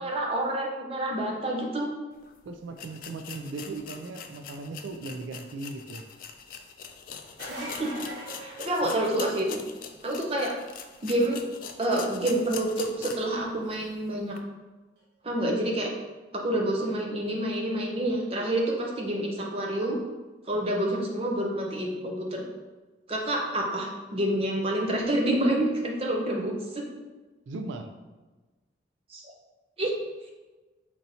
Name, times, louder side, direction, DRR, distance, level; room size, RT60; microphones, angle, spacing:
voice 1, 0.0-1.9 7.5-8.0 8.4-9.6 10.0-10.6 11.0-11.4 11.8-14.4 15.2-15.9 16.3-20.0 20.5-22.4 23.1-26.8 29.1-29.2 29.8-30.0, right 1 dB, 30° right, 0 dB, 0.6 m, -28 dB
sound 1, 2.2-2.3 2.7-13.4 13.7-13.8 14.3-14.4, left 7 dB, 45° left, 0.3 m, -42 dB
voice 2, 2.5-6.0 8.8-9.0 27.5-27.9, right 3 dB, 80° right, 6 dB, 0.4 m, -38 dB
sound 2, 7.2-9.5 15.0-15.1 16.9-17.0, right 1 dB, 65° right, 1.5 m, -40 dB
4.4 x 4.2 x 2.7 m, 1.2 s
head